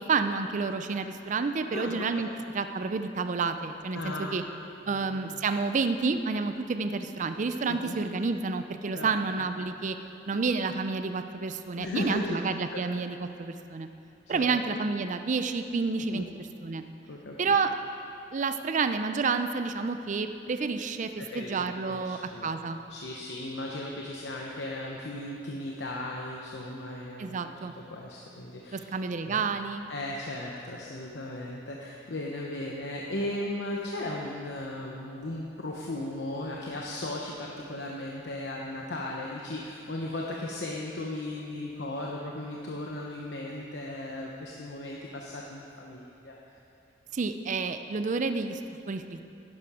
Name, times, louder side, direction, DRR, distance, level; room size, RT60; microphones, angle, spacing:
voice 1, 0.0-2.3 2.5-4.4 4.9-10.0 10.3-13.9 14.3-16.3 16.6-16.8 17.4-17.7 18.3-21.1 21.3-22.8 27.2-27.7 28.7-29.8 47.1-48.6 48.9-49.3, right 4 dB, 45° right, 9 dB, 0.5 m, -29 dB
voice 2, 1.7-2.4 3.9-4.5 4.8-5.2 7.7-8.0 8.9-9.5 11.8-12.4 12.7-12.8 14.3-14.6 16.1-16.2 17.1-17.6 21.2-22.6 22.9-27.5 27.9-28.8 29.2-29.4 29.9-46.4, left 1 dB, 75° left, -2 dB, 0.9 m, -36 dB
11.0 x 10.5 x 4.9 m, 2.7 s
head